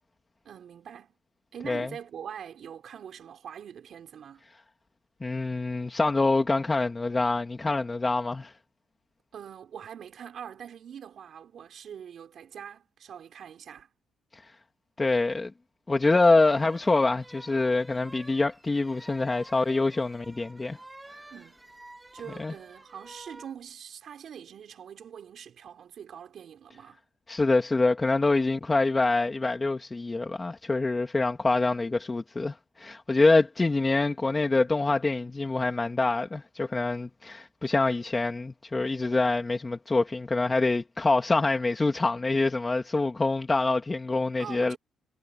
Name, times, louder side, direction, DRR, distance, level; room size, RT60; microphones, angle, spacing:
voice 1, 0.4-1.1 1.5-4.4 9.3-13.9 21.3-21.6 22.1-27.0 44.4-44.8, right 8 dB, 60° right, 5.2 m, -43 dB
voice 2, 5.2-8.5 14.3-14.4 15.0-15.5 15.9-20.8 22.4-22.5 27.3-44.8, left 3 dB, 20° left, 2.2 m, -25 dB
sound 1, 16.0-23.5, right 2 dB, 15° right, 6.5 m, -50 dB
cardioid pair, 90°, 0 cm